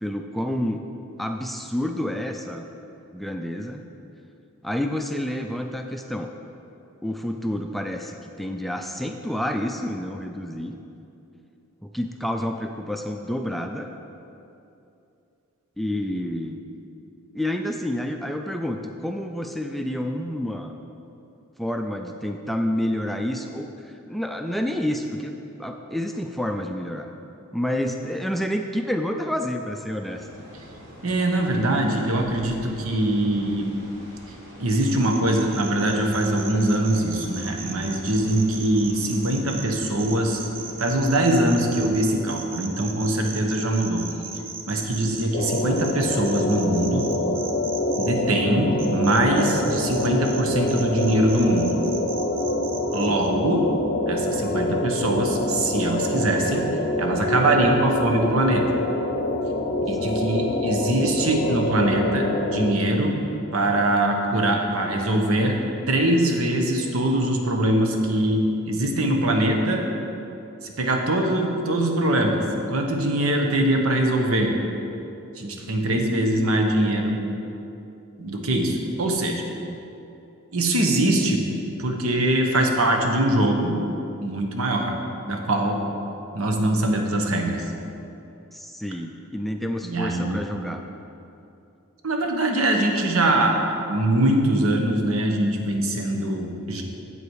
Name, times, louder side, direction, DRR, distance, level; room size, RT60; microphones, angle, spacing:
voice 1, 0.0-0.8 1.2-2.7 3.1-3.9 4.6-6.3 7.0-10.8 11.8-13.9 15.8-16.6 17.3-20.7 21.6-27.1 27.5-30.3 53.1-53.2 60.0-60.1 79.5-79.8 88.5-90.8, left 1 dB, ahead, 4 dB, 0.3 m, -29 dB
sound 1, 30.0-41.1, equal, 60° right, 2.3 m, -45 dB
voice 2, 31.0-33.7 34.6-40.4 40.8-44.0 44.7-47.1 47.9-51.7 52.9-53.7 54.1-56.7 57.0-58.7 59.9-63.2 63.5-65.6 65.9-69.8 70.6-74.5 75.4-77.2 78.2-79.4 80.5-81.4 81.8-83.8 84.2-85.0 85.3-85.8 86.3-87.6 89.8-90.4 92.0-96.8, right 1 dB, 80° right, 2 dB, 1.1 m, -22 dB
sound 2, 34.8-48.1 48.8-50.4 50.7-53.3, right 5 dB, 45° right, 0.8 m, -37 dB
sound 3, 45.3-62.7, left 1 dB, 45° left, 0.6 m, -26 dB
8.1 x 7.9 x 4.7 m, 2.8 s
head